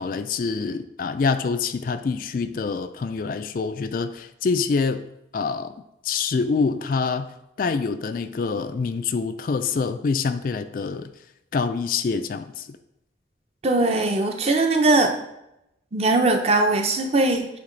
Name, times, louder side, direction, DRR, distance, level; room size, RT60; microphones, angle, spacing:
voice 1, 0.0-5.0 5.3-5.7 6.0-7.3 7.6-11.1 11.5-12.8, left 4 dB, 50° left, 11 dB, 0.3 m, -26 dB
voice 2, 13.6-15.1 15.9-17.5, right 2 dB, 35° right, 4 dB, 0.7 m, -20 dB
8.6 x 3.6 x 3.9 m, 0.84 s
head